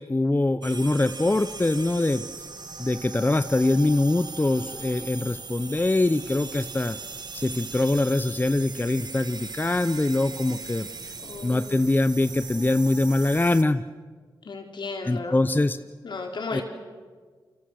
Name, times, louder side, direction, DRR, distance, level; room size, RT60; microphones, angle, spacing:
voice 1, 0.0-2.2 2.8-7.0 7.3-11.1 11.4-13.8 15.1-15.8 16.5-16.6, left 2 dB, 25° left, 11 dB, 0.8 m, -23 dB
sound 1, 0.6-13.6, right 4 dB, 60° right, 1.7 m, -39 dB
voice 2, 11.2-12.0 14.5-15.4 16.0-16.6, left 4 dB, 70° left, 2 dB, 4.0 m, -35 dB
29.5 x 24.5 x 6.5 m, 1.5 s
cardioid pair, 55°, 8 cm